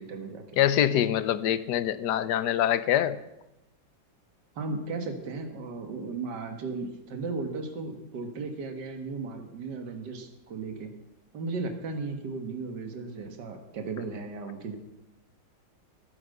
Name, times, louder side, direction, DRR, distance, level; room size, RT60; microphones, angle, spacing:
voice 1, 0.0-0.4 4.6-11.0 11.3-14.8, right 3 dB, 75° right, 6 dB, 2.1 m, -35 dB
voice 2, 0.6-3.2, left 11 dB, 75° left, 15 dB, 1.2 m, -24 dB
13.5 x 9.0 x 6.6 m, 0.89 s
omnidirectional pair, 1.9 m